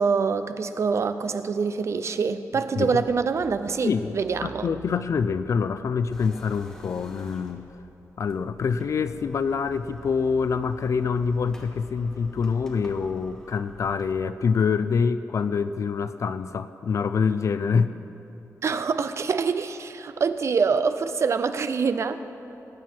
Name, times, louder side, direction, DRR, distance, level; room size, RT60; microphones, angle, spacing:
voice 1, 0.0-4.7 18.6-22.2, right 5 dB, 55° right, 11 dB, 0.6 m, -25 dB
sound 1, 3.0-14.2, equal, 75° left, 3.7 m, -50 dB
voice 2, 3.8-7.7 8.2-17.9 18.7-18.8, left 5 dB, 60° left, 12 dB, 0.4 m, -26 dB
sound 2, 6.1-7.8 8.3-8.4 8.7-14.9, equal, 10° left, 1.5 m, -51 dB
20.0 x 9.3 x 4.4 m, 2.9 s
wide cardioid pair, 135°, 6 cm